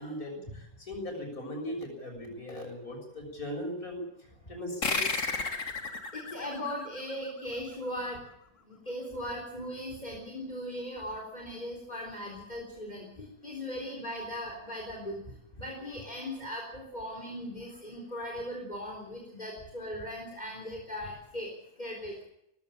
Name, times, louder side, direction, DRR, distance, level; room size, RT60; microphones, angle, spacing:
voice 1, 0.0-5.3, left 1 dB, 85° left, 3 dB, 7.1 m, -39 dB
sound 1, 4.8-7.9, left 3 dB, 60° left, 2.5 m, -33 dB
voice 2, 6.1-8.2 8.7-15.2 15.6-21.5 21.8-22.2, equal, 30° left, -1 dB, 4.1 m, -38 dB
18.5 x 16.0 x 8.8 m, 0.78 s
omnidirectional pair, 1.5 m